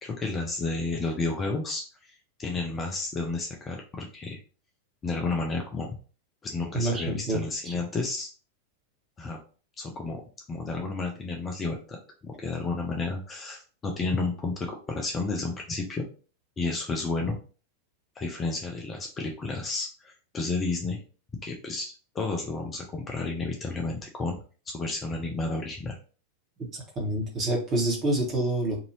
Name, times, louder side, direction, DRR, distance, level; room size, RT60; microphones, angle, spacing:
voice 1, 0.0-4.4 5.0-6.0 6.4-8.3 9.2-9.4 9.8-10.2 10.5-16.1 16.6-17.4 18.2-21.0 21.4-24.4 24.7-26.0, left 3 dB, 20° left, 1 dB, 0.6 m, -31 dB
voice 2, 6.7-7.4 7.6-7.8 26.9-28.8, right 1 dB, 25° right, -1 dB, 1.3 m, -27 dB
2.8 x 2.6 x 3.0 m, 0.37 s
figure-of-eight pair, 90°, 0 cm